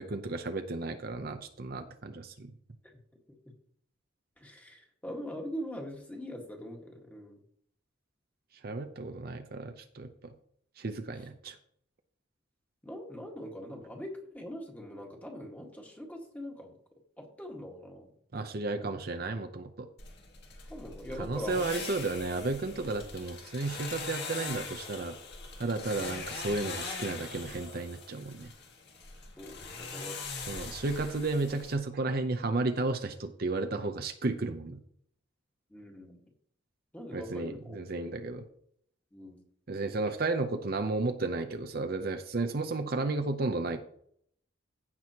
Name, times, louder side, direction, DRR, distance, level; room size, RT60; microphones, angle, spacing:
voice 1, 0.0-2.5 8.6-10.3 10.8-11.6 18.3-19.9 21.2-25.2 25.6-28.5 30.5-34.8 37.1-38.4 39.7-43.8, right 3 dB, 50° right, 7 dB, 0.6 m, -33 dB
voice 2, 4.4-7.4 12.8-16.7 17.2-18.1 20.7-21.7 29.4-30.2 35.7-36.2 36.9-37.8 39.1-39.4, equal, 10° left, 1 dB, 1.7 m, -42 dB
sound 1, 20.0-31.7, left 4 dB, 55° left, 1.8 m, -42 dB
15.5 x 6.1 x 2.9 m, 0.66 s
head